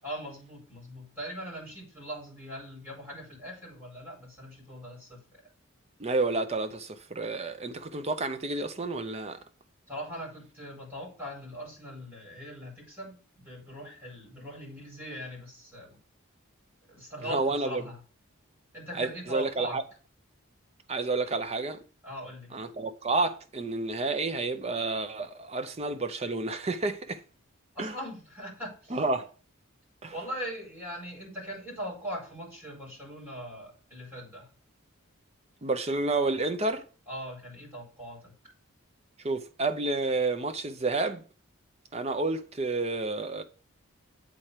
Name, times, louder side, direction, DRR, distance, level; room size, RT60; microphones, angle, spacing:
voice 1, 0.0-5.4 9.9-16.0 16.9-18.0 18.7-19.8 22.0-22.5 27.7-29.0 30.1-34.5 37.1-38.3, equal, 10° right, 4.7 m, -40 dB
voice 2, 6.0-9.4 17.2-17.8 18.9-19.8 20.9-21.8 22.5-27.2 27.8-27.9 28.9-29.3 30.0-30.1 35.6-36.8 39.2-41.2 41.9-43.4, right 3 dB, 30° right, 0.6 m, -30 dB
7.8 x 4.3 x 5.0 m
head